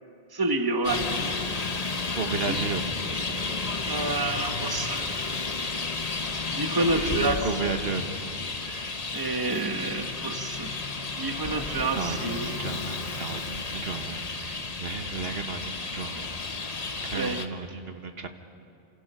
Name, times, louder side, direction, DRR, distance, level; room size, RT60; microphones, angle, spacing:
voice 1, 0.3-1.0 1.3-1.5 2.5-2.6 3.9-5.2 6.5-7.4 8.6-8.9 9.1-10.8 11.2-12.6 17.1-17.4, right 2 dB, 20° right, 6 dB, 1.2 m, -29 dB
Traffic noise roadway noise, 0.8-17.5, left 3 dB, 40° left, 1.1 m, -32 dB
voice 2, 2.2-2.9 6.7-8.2 11.9-16.3 17.0-18.3, right 5 dB, 65° right, 6 dB, 1.4 m, -33 dB
28.5 x 27.0 x 5.6 m, 2.6 s
omnidirectional pair, 1.1 m